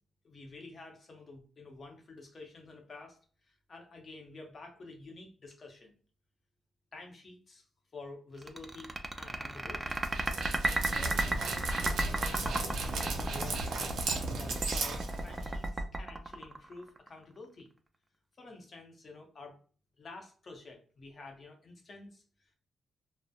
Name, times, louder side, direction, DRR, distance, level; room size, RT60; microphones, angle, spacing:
voice 1, 0.2-6.0 6.9-7.6 7.9-10.0 10.5-13.6 14.3-17.7 18.4-19.6 20.0-22.5, left 3 dB, 45° left, 2 dB, 0.8 m, -50 dB
sound 1, 8.4-17.1, right 2 dB, 25° right, 0.3 m, -33 dB
Dog, 9.9-15.7, right 3 dB, 80° right, 0.5 m, -36 dB
2.3 x 2.0 x 2.7 m, 0.40 s
cardioid pair, 75°, 0 cm